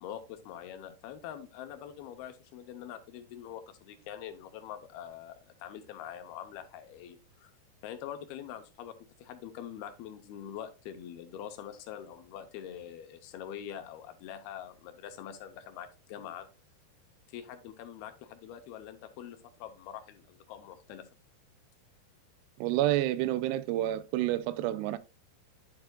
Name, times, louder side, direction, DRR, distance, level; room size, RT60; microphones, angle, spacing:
voice 1, 0.0-7.5 7.8-16.5 17.3-21.1, left 10 dB, 80° left, 2.5 m, -44 dB
voice 2, 22.6-25.0, right 14 dB, 85° right, 2.6 m, -29 dB
10.5 x 6.7 x 2.3 m
omnidirectional pair, 4.8 m